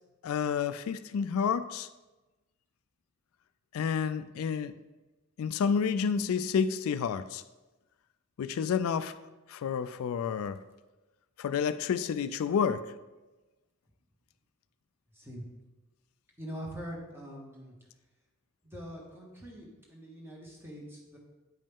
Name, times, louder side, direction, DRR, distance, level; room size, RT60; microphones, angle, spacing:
voice 1, 0.2-1.9 3.7-4.7 5.4-7.4 8.4-9.2 9.5-10.6 11.4-12.9, left 6 dB, 75° left, 0.3 m, -30 dB
voice 2, 15.1-15.4 16.4-17.7 18.6-21.2, equal, 10° right, 1.4 m, -43 dB
9.6 x 5.3 x 3.6 m
head